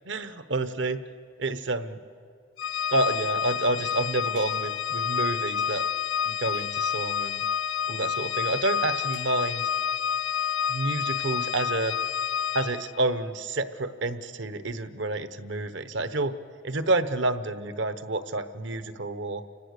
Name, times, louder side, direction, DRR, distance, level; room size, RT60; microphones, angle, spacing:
voice 1, 0.1-1.0 1.4-2.0 2.9-5.8 6.2-7.4 7.9-9.6 10.7-11.9 12.5-16.3 16.6-19.4, right 2 dB, 65° right, 11 dB, 1.1 m, -29 dB
Organ, 2.6-13.0, left 8 dB, 80° left, 0.5 m, -29 dB
sound 1, 4.4-4.8 6.5-7.1 9.1-9.4, right 4 dB, 85° right, 7.5 m, -53 dB
30.0 x 17.5 x 6.7 m, 2.2 s
head